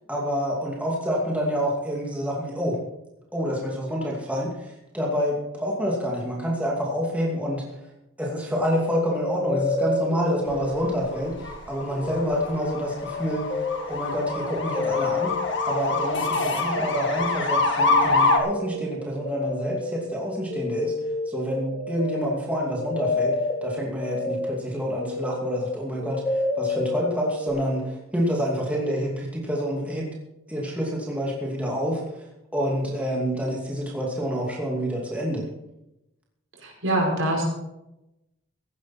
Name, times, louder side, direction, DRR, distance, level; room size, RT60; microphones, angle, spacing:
voice 1, 0.1-2.8 3.3-7.8 8.2-15.3 15.6-20.9 21.3-30.1 30.5-32.3 32.5-35.4, equal, 5° right, -3 dB, 2.6 m, -28 dB
sound 1, 9.1-11.5 11.8-27.5, left 2 dB, 20° left, 1.9 m, -31 dB
sound 2, 10.5-18.4, left 3 dB, 60° left, 2.0 m, -26 dB
voice 2, 36.6-37.4, right 1 dB, 70° right, -1 dB, 5.5 m, -24 dB
16.5 x 11.5 x 4.4 m, 0.91 s
head